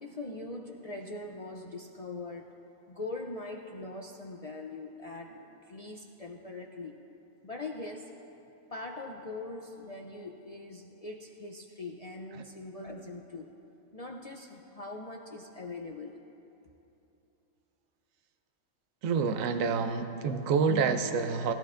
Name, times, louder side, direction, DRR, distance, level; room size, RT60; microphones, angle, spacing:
voice 1, 0.0-2.5 2.9-7.0 7.4-8.1 8.7-13.5 13.9-16.2, left 2 dB, 60° left, 1 dB, 0.4 m, -42 dB
voice 2, 19.0-21.5, right 5 dB, 75° right, 8 dB, 1.0 m, -28 dB
19.5 x 13.5 x 2.5 m, 3.0 s
omnidirectional pair, 1.4 m